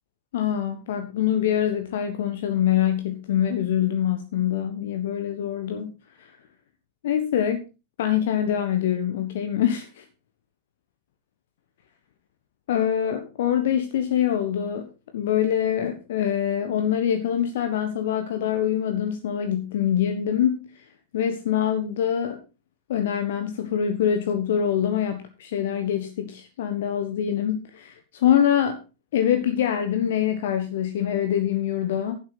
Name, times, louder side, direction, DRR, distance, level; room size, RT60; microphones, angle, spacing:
voice 1, 0.3-5.9 6.2-6.3 7.0-7.6 8.0-10.0 12.7-14.9 15.1-20.7 21.1-22.4 22.9-28.8 29.1-32.2, left 9 dB, 55° left, 7 dB, 1.3 m, -24 dB
11.5 x 9.4 x 4.1 m, 0.30 s
figure-of-eight pair, 90°, 0 cm